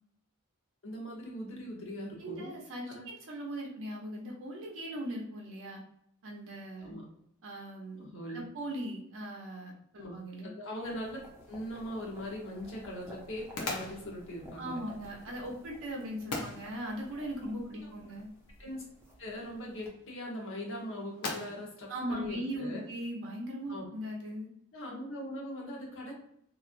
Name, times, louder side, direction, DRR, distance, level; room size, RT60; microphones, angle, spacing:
voice 1, 0.8-2.5 2.9-3.1 6.8-7.0 8.0-8.4 10.0-10.2 10.4-11.2 11.5-14.8 17.7-17.9 18.6-18.8 19.2-22.8 23.7-23.8 24.7-26.1, equal, 60° left, -1 dB, 0.9 m, -41 dB
voice 2, 2.2-5.8 6.2-7.0 7.4-10.5 14.6-18.3 21.9-24.5, right 1 dB, 60° right, -1 dB, 0.6 m, -39 dB
sound 1, 10.8-19.9, left 1 dB, 10° right, 0.6 m, -54 dB
sound 2, 11.4-23.1, left 2 dB, 90° left, 0.7 m, -45 dB
3.0 x 2.4 x 2.5 m, 0.72 s
head